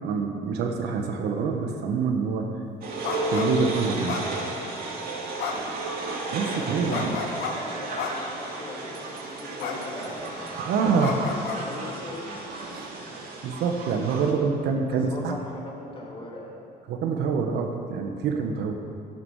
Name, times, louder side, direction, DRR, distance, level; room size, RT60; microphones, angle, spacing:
voice 1, 0.0-2.5 3.3-4.2 6.3-7.2 10.5-11.2 12.7-12.9 13.4-15.3 16.9-18.7, right 5 dB, 80° right, 3 dB, 1.4 m, -26 dB
sound 1, 2.8-14.3, right 1 dB, 60° right, 2.5 m, -33 dB
sound 2, 3.0-3.5 4.1-4.7 5.4-5.8 6.9-7.5 8.0-8.4 9.6-9.8 10.1-10.4 11.0-11.6, left 6 dB, 85° left, 1.4 m, -32 dB
voice 2, 6.4-12.5 14.9-16.5, left 2 dB, 30° left, -3 dB, 3.2 m, -40 dB
11.0 x 11.0 x 6.5 m, 2.6 s
cardioid pair, 110°, 17 cm